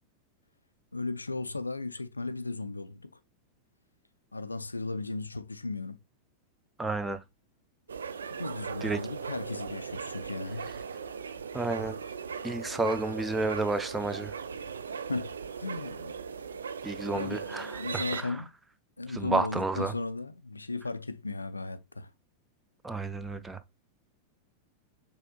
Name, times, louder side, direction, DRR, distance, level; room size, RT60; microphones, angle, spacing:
voice 1, 0.9-3.1 4.3-6.0 8.4-10.7 14.9-16.2 17.1-18.5 19.0-22.1, left 3 dB, 80° left, 0.3 m, -36 dB
voice 2, 6.8-7.2 8.8-9.0 11.5-12.0 12.4-14.4 16.8-18.4 19.1-19.9 22.8-23.6, right 3 dB, 10° right, 0.5 m, -31 dB
sound 1, 7.9-18.2, right 6 dB, 70° right, 0.4 m, -38 dB
6.6 x 3.4 x 2.2 m
figure-of-eight pair, 90°, 0 cm